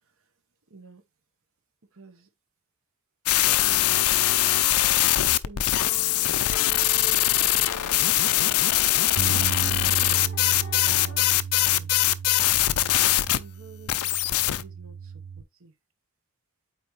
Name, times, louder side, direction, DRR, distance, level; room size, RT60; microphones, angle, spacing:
voice 1, 0.7-1.0 1.9-2.3 3.4-4.1 5.4-8.7 9.2-10.3 10.8-11.9 12.8-15.7, right 3 dB, 65° right, 1.2 m, -49 dB
sound 1, 3.3-13.4 13.9-14.6, left 15 dB, 75° left, 0.5 m, -22 dB
sound 2, 5.7-11.2, left 2 dB, 55° left, 1.1 m, -43 dB
Bass guitar, 9.2-15.4, right 6 dB, 40° right, 0.6 m, -35 dB
8.4 x 4.1 x 3.2 m
head